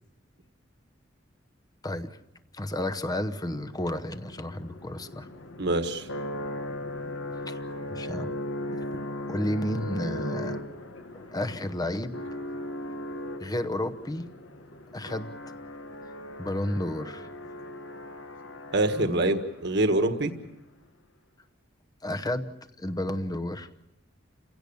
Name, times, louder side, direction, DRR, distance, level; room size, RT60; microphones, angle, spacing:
voice 1, 1.8-2.2 2.5-5.3 7.5-7.6 7.9-8.3 9.3-10.6 11.1-12.2 13.4-14.3 14.9-15.3 16.4-17.3 19.0-19.3 22.0-23.7, left 1 dB, 20° left, 11 dB, 0.9 m, -32 dB
sound 1, 3.3-19.5, left 1 dB, 80° left, 1.7 m, -38 dB
voice 2, 5.6-6.1 18.7-20.3, right 2 dB, 60° right, 7 dB, 1.6 m, -25 dB
29.5 x 17.0 x 7.0 m, 0.94 s
head